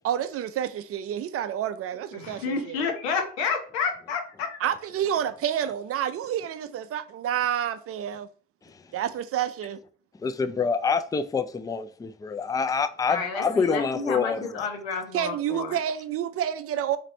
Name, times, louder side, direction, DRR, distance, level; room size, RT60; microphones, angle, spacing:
voice 1, 0.0-2.4 4.6-8.3 8.9-9.8 15.1-17.0, right 10 dB, 50° right, 0.5 m, -29 dB
voice 2, 2.1-4.6 13.1-15.8, left 5 dB, 90° left, 0.9 m, -30 dB
voice 3, 10.2-14.4, left 5 dB, 10° left, 0.4 m, -26 dB
3.3 x 2.6 x 4.2 m
hypercardioid pair, 60°, 31 cm